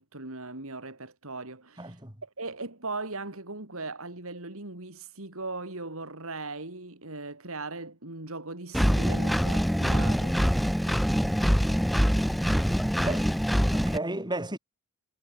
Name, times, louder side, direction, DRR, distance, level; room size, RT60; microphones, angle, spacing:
voice 1, 0.0-10.4, right 3 dB, 65° right, 3.5 m, -39 dB
voice 2, 1.8-2.1 13.0-13.3 13.7-14.6, right 2 dB, 20° right, 5.8 m, -33 dB
Engine, 8.7-14.0, equal, ahead, 0.8 m, -24 dB
head